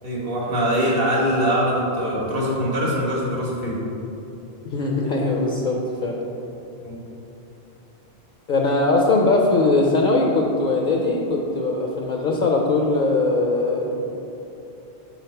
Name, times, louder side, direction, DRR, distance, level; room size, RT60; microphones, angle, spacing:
voice 1, 0.0-3.8 6.8-7.0, equal, 65° right, -4 dB, 1.5 m, -23 dB
voice 2, 4.6-6.1 8.5-14.1, left 2 dB, 60° left, 0 dB, 0.6 m, -20 dB
4.6 x 4.0 x 5.4 m, 3.0 s
omnidirectional pair, 1.1 m